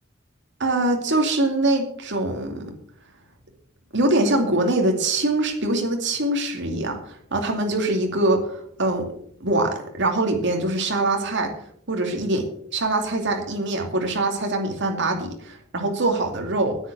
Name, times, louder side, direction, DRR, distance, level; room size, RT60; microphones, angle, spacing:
voice 1, 0.6-2.7 3.9-7.0 7.3-9.0 9.4-11.5 11.9-12.4 12.7-16.8, right 2 dB, 60° right, 3 dB, 2.5 m, -23 dB
9.6 x 9.6 x 6.3 m, 0.64 s
head